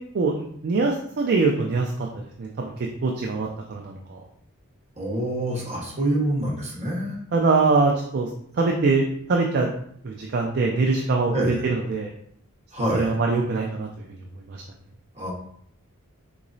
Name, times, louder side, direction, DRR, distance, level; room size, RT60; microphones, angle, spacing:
voice 1, 0.1-1.9 2.4-2.7 3.0-4.2 7.3-8.3 8.6-9.0 9.3-9.7 10.0-12.1 12.9-13.9 14.5-14.6, right 3 dB, 45° right, 1 dB, 0.4 m, -23 dB
voice 2, 5.0-7.2 11.3-11.6 12.7-13.2 15.1-15.3, right 1 dB, 30° right, -3 dB, 1.1 m, -26 dB
3.7 x 3.0 x 2.6 m, 0.66 s
head